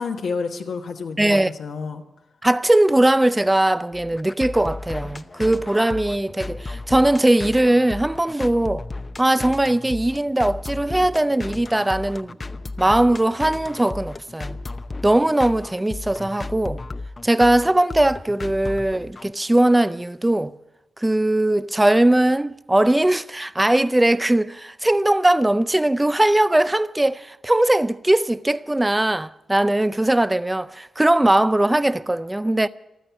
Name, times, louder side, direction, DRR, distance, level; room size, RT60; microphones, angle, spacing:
voice 1, 0.0-2.0, left 5 dB, 75° left, 1.2 m, -29 dB
voice 2, 1.2-1.5 2.4-8.8 9.2-12.4 12.8-14.6 15.0-16.8 17.2-20.5 21.0-32.7, right 1 dB, 15° right, 0.5 m, -20 dB
sound 1, 3.9-19.3, left 3 dB, 35° left, 0.7 m, -34 dB
14.0 x 13.0 x 6.9 m
cardioid pair, 55°, 0 cm